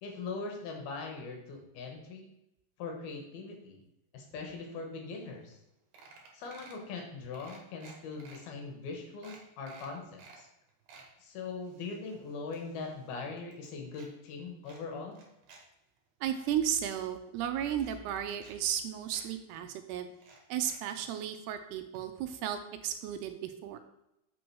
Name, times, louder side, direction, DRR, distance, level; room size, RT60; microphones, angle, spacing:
voice 1, 0.0-2.3 2.8-3.8 4.1-5.6 6.3-10.5 11.2-15.2, left 4 dB, 70° left, 2 dB, 3.1 m, -41 dB
sound 1, 5.2-5.3 5.5-5.7 5.9-6.9 7.3-8.4 8.8-8.9 9.2-10.4 10.7-11.1 11.6-13.1 13.4-14.1 14.6-15.6 16.0-16.5 17.3-17.4 17.7-18.5 18.8-18.9 19.1-19.3 20.1-21.1 21.9-22.0 22.3-22.4, right 4 dB, 60° right, 2.6 m, -55 dB
voice 2, 16.2-20.1 20.5-23.8, right 10 dB, 80° right, 8 dB, 2.5 m, -34 dB
7.6 x 6.2 x 4.6 m, 0.86 s
omnidirectional pair, 4.8 m